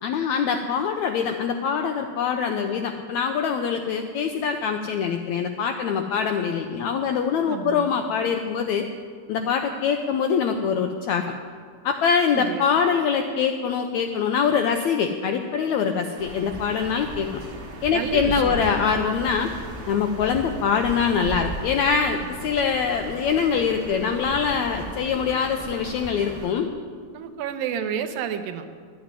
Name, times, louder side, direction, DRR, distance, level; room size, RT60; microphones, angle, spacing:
voice 1, 0.0-8.8 9.3-11.2 11.8-17.3 17.8-19.5 19.9-26.7, left 6 dB, 85° left, 5 dB, 1.6 m, -24 dB
voice 2, 7.5-8.0 12.3-12.7 17.9-18.6 27.1-28.7, right 8 dB, 80° right, 8 dB, 2.6 m, -30 dB
sound 1, 16.2-26.5, right 2 dB, 35° right, 1.9 m, -37 dB
12.5 x 9.3 x 9.6 m, 2.1 s
omnidirectional pair, 4.0 m